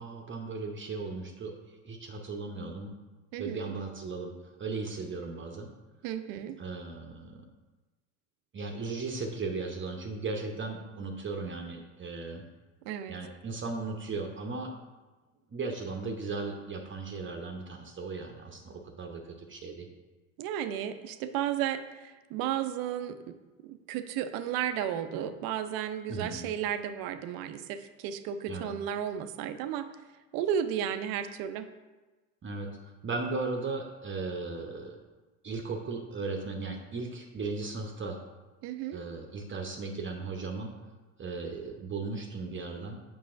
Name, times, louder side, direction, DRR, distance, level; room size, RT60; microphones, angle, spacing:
voice 1, 0.0-2.9 3.4-4.3 4.6-5.7 6.6-7.5 8.5-12.4 13.1-14.7 15.5-19.9 26.1-26.4 28.5-28.7 32.4-32.7 33.0-35.0 35.4-38.2 38.9-40.7 41.2-43.0, right 3 dB, 30° right, 2 dB, 0.8 m, -36 dB
voice 2, 3.3-3.7 6.0-6.6 12.9-13.2 20.4-23.4 23.6-29.9 30.3-31.7 38.6-39.0, right 9 dB, 65° right, 10 dB, 0.6 m, -33 dB
6.8 x 5.4 x 2.6 m, 1.2 s
hypercardioid pair, 75°, 38 cm